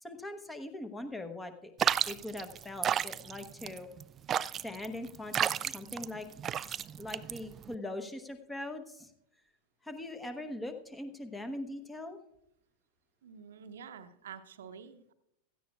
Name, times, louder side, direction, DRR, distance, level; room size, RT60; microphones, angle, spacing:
voice 1, 0.0-1.7 2.1-3.9 4.6-6.3 6.6-9.1 9.8-12.2, left 1 dB, 10° left, 8 dB, 1.0 m, -41 dB
sound 1, 1.8-7.7, right 9 dB, 25° right, 0.3 m, -32 dB
voice 2, 13.2-15.1, right 7 dB, 60° right, 10 dB, 0.8 m, -48 dB
16.5 x 13.5 x 2.4 m, 0.78 s
figure-of-eight pair, 90°, 0 cm